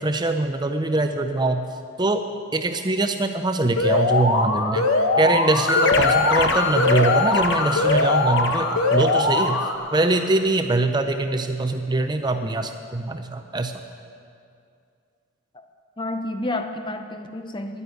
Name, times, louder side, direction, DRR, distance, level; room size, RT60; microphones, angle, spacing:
voice 1, 0.0-1.6 2.0-2.2 2.5-4.9 5.2-9.6 9.9-13.7, right 2 dB, 20° right, 7 dB, 0.5 m, -23 dB
Alarm, 3.8-9.8, left 2 dB, 85° left, 1.2 m, -21 dB
sound 1, 5.7-10.0, left 4 dB, 55° left, 1.0 m, -26 dB
voice 2, 16.0-17.8, left 2 dB, 20° left, 7 dB, 0.7 m, -30 dB
11.5 x 9.7 x 9.2 m, 2.4 s
head